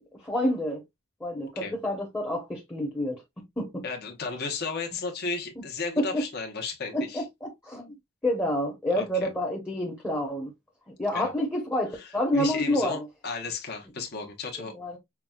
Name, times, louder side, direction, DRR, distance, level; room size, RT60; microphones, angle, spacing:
voice 1, 0.2-0.8 1.2-3.2 3.6-3.8 6.0-6.2 6.9-8.0 8.2-10.5 11.0-13.1 14.7-15.0, left 1 dB, 10° left, 0.9 m, -28 dB
voice 2, 3.8-7.2 8.9-9.3 11.1-11.3 11.9-14.7, left 4 dB, 50° left, 0.9 m, -34 dB
5.8 x 2.3 x 2.3 m
head